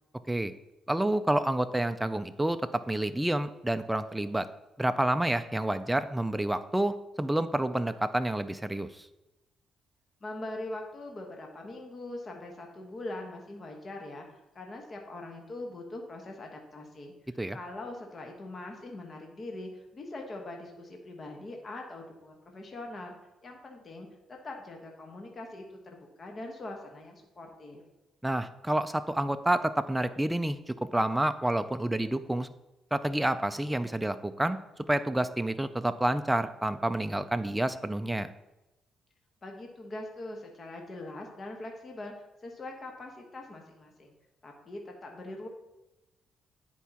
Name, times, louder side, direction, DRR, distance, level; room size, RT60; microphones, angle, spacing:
voice 1, 0.9-4.5 4.8-9.1 17.4-17.6 28.2-32.5 32.9-34.6 34.9-38.3, right 1 dB, 10° right, 10 dB, 0.3 m, -29 dB
voice 2, 10.2-23.1 23.4-27.8 39.4-44.1 44.4-45.5, left 2 dB, 35° left, 1 dB, 1.2 m, -42 dB
10.5 x 4.6 x 2.9 m, 1.0 s
cardioid pair, 90°, 0 cm